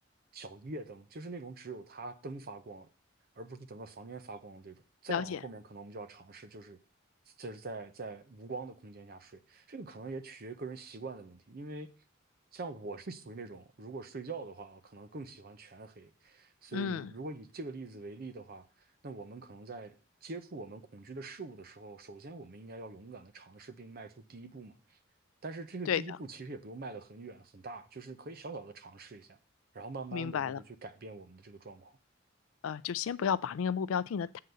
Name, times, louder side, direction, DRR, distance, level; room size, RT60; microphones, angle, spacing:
voice 1, 0.3-2.9 3.4-6.8 7.4-11.9 12.5-18.7 19.0-19.9 20.2-25.0 25.4-29.4 29.7-32.0, right 3 dB, 50° right, 0.7 m, -44 dB
voice 2, 5.1-5.4 16.7-17.1 25.9-26.0 30.1-30.6 32.6-34.4, left 7 dB, 85° left, 0.4 m, -32 dB
7.7 x 3.8 x 6.7 m
head